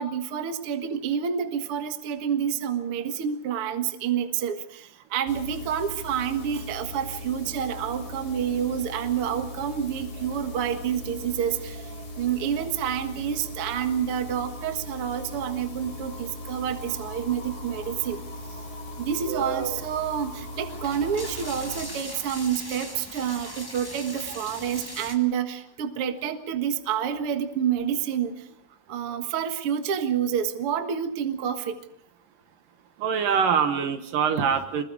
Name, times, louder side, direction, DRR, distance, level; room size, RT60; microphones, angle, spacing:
voice 1, 0.0-18.2 19.0-28.5 28.9-31.8 34.4-34.5, right 8 dB, 50° right, 6 dB, 2.0 m, -28 dB
sound 1, 5.3-21.9, left 1 dB, 55° left, 5.0 m, -39 dB
sound 2, 16.8-17.9 18.6-18.7 18.9-25.2, left 1 dB, 10° left, 1.5 m, -40 dB
voice 2, 19.3-19.7 33.0-34.8, right 7 dB, 70° right, 8 dB, 2.8 m, -24 dB
27.0 x 21.5 x 4.9 m, 0.75 s
omnidirectional pair, 4.2 m